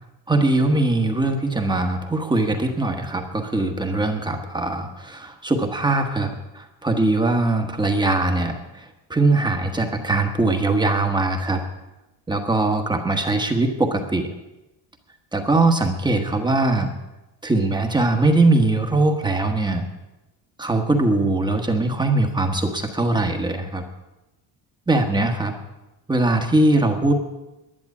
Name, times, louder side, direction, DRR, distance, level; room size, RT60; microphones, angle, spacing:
voice 1, 0.3-6.3 6.5-8.8 9.1-11.6 12.3-14.3 15.3-16.9 17.4-19.8 20.6-23.8 24.9-25.5 26.1-27.1, right 2 dB, 10° right, 4 dB, 1.3 m, -21 dB
11.0 x 10.5 x 8.4 m, 1.0 s
cardioid pair, 155°, 42 cm